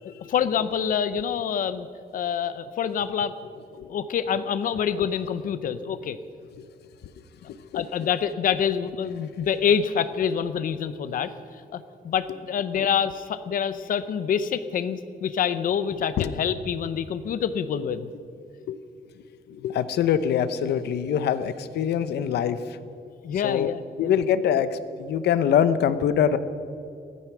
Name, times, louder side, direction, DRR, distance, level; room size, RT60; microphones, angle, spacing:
voice 1, 0.0-1.9 2.1-3.3 3.9-6.2 7.7-11.3 11.7-18.1 23.2-24.1, left 8 dB, 55° left, 12 dB, 0.8 m, -26 dB
voice 2, 7.5-7.8 16.2-16.3 18.7-18.8 19.5-22.8 23.4-23.7 24.0-26.4, left 8 dB, 85° left, 12 dB, 0.9 m, -24 dB
16.5 x 14.0 x 6.1 m, 2.5 s
wide cardioid pair, 170°, 17 cm